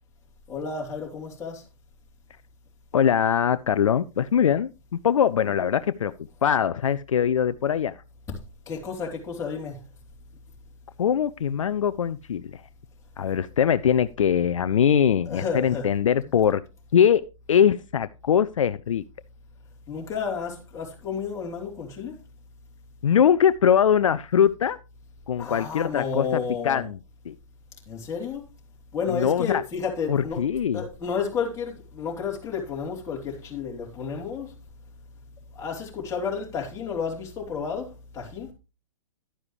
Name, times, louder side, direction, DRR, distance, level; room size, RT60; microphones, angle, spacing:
voice 1, 0.5-1.6 8.7-9.8 15.3-15.8 19.9-22.1 25.4-26.8 27.9-28.4 28.9-30.4 30.7-34.5 35.6-37.9 38.1-38.5, left 6 dB, 15° left, 3.3 m, -31 dB
voice 2, 2.9-4.7 5.0-6.1 6.4-8.0 11.0-12.6 13.2-16.6 16.9-17.2 17.5-19.0 23.0-24.8 25.3-27.0 27.3-27.4 29.1-29.6 30.1-30.8, left 8 dB, 70° left, 0.5 m, -22 dB
11.5 x 9.6 x 3.1 m
figure-of-eight pair, 120°, 17 cm